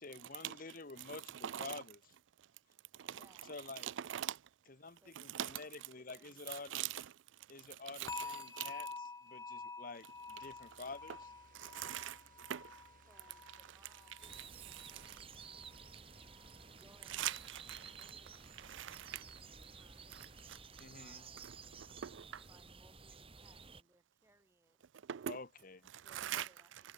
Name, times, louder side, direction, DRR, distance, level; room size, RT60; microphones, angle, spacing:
voice 1, 0.0-2.2 3.5-3.9 4.7-6.7 7.5-11.3 20.8-21.2 25.3-25.9, left 3 dB, 45° left, 1.2 m, -49 dB
voice 2, 3.0-3.5 5.0-7.0 13.0-15.4 16.3-18.4 19.7-20.2 20.9-21.6 22.0-24.9 25.9-26.9, right 1 dB, 15° right, 7.3 m, -70 dB
sound 1, 8.1-15.1 15.4-15.8 16.3-16.4, left 4 dB, 15° left, 1.3 m, -49 dB
sound 2, 10.1-20.5, right 3 dB, 45° right, 2.9 m, -66 dB
voice 3, 11.6-12.2 12.5-12.6 17.2-17.3 18.7-19.2 22.0-22.2 25.1-25.3 26.2-26.4, right 11 dB, 70° right, 0.4 m, -39 dB
sound 3, 14.2-23.8, right 5 dB, 30° right, 3.1 m, -54 dB
head